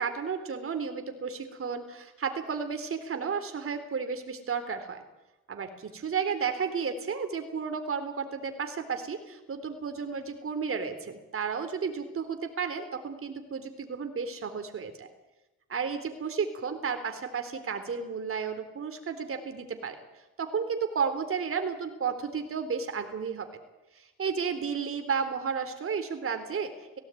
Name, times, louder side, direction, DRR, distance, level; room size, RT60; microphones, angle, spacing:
voice 1, 0.0-5.0 5.5-15.1 15.7-20.0 20.4-23.5 23.9-27.0, right 6 dB, 45° right, 7 dB, 3.8 m, -33 dB
17.5 x 17.5 x 9.3 m, 1.0 s
cardioid pair, 90°, 30 cm